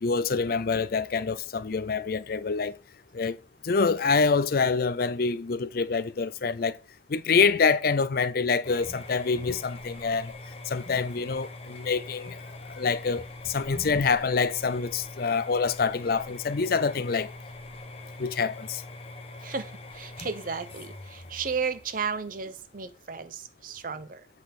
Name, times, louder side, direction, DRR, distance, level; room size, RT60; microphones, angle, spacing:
voice 1, 0.0-2.8 3.1-3.4 3.6-6.8 7.1-10.3 10.7-12.4 12.7-17.3 18.2-18.8, left 5 dB, 55° left, 0.5 m, -26 dB
sound 1, 8.6-23.1, left 2 dB, 35° left, 1.1 m, -43 dB
voice 2, 19.4-24.3, right 5 dB, 50° right, 0.7 m, -34 dB
8.1 x 5.2 x 4.3 m
head